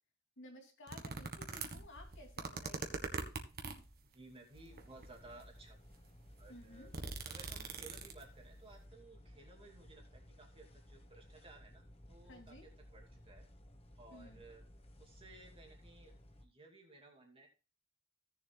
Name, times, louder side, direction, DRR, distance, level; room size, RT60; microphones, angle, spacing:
voice 1, 0.4-2.9 6.5-6.9 12.3-12.7 14.1-14.4, left 1 dB, 60° left, 2 dB, 2.7 m, -55 dB
sound 1, 0.9-3.9 4.7-5.3 5.9-6.0 6.2-8.4 8.7-8.8, right 4 dB, 45° right, 1.6 m, -43 dB
voice 2, 4.0-5.8 6.4-6.9 7.3-13.5 14.0-14.6 15.0-17.5, right 2 dB, 25° right, 1 dB, 2.6 m, -58 dB
sound 2, 4.5-16.5, equal, 30° left, 1.2 m, -58 dB
17.0 x 7.1 x 2.3 m, 0.32 s
head